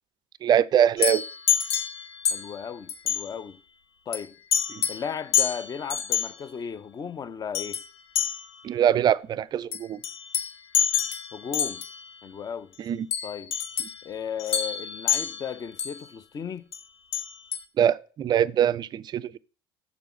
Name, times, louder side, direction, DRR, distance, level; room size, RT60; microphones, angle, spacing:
voice 1, 0.4-1.2 4.7-4.8 8.6-10.0 12.9-13.1 17.8-19.4, right 10 dB, 35° right, 0.4 m, -23 dB
sound 1, 1.0-2.6 2.9-3.3 4.1-4.2 4.5-5.1 5.3-6.3 7.5-7.9 8.2-8.6 9.7-12.0 13.1-14.0 14.4-16.0 16.7-16.8 17.1-17.6, left 9 dB, 75° left, 0.6 m, -27 dB
voice 2, 2.3-3.6 4.1-4.4 4.9-7.8 11.3-11.8 12.2-12.7 13.2-13.5 14.0-16.7, left 7 dB, 30° left, 0.6 m, -35 dB
7.0 x 6.8 x 3.0 m
hypercardioid pair, 70°, 13 cm